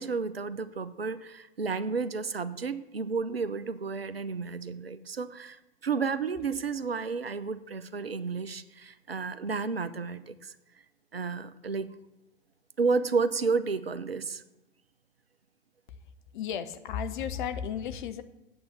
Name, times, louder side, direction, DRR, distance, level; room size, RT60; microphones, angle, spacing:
voice 1, 0.0-10.5 11.1-11.9 12.8-14.4, right 4 dB, 85° right, 14 dB, 0.6 m, -31 dB
voice 2, 16.3-18.2, left 8 dB, 55° left, 11 dB, 0.9 m, -34 dB
8.7 x 7.9 x 6.9 m, 0.96 s
figure-of-eight pair, 95°, 29 cm